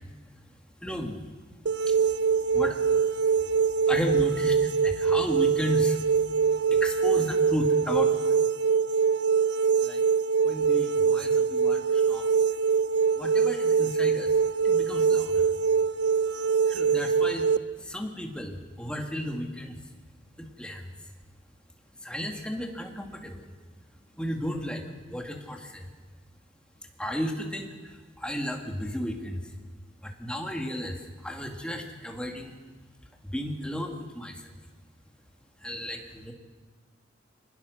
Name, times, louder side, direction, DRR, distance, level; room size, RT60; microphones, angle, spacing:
voice 1, 0.8-1.2 1.9-2.1 2.5-2.8 3.9-6.0 6.7-8.1 9.8-10.0 10.4-12.3 13.2-14.3 14.6-15.5 16.7-17.5 17.8-19.8 20.4-20.9 22.0-23.4 24.2-25.9 27.0-29.4 30.0-32.5 33.2-34.5 35.6-36.3, equal, 5° left, 2 dB, 2.1 m, -34 dB
sound 1, 1.7-17.6, right 6 dB, 60° right, 0.6 m, -24 dB
23.5 x 20.0 x 6.5 m, 1.5 s
head